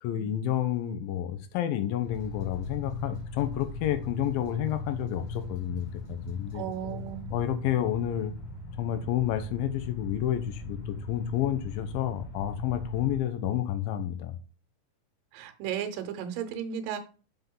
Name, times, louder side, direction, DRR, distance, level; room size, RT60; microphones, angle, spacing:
voice 1, 0.0-6.7 7.3-8.3 8.8-14.4, left 11 dB, 85° left, 9 dB, 2.6 m, -30 dB
sound 1, 2.0-13.2, left 2 dB, 50° left, 2.1 m, -39 dB
voice 2, 6.5-7.5 15.3-17.0, right 9 dB, 80° right, 7 dB, 2.5 m, -35 dB
5.7 x 5.7 x 3.7 m, 0.35 s
omnidirectional pair, 4.1 m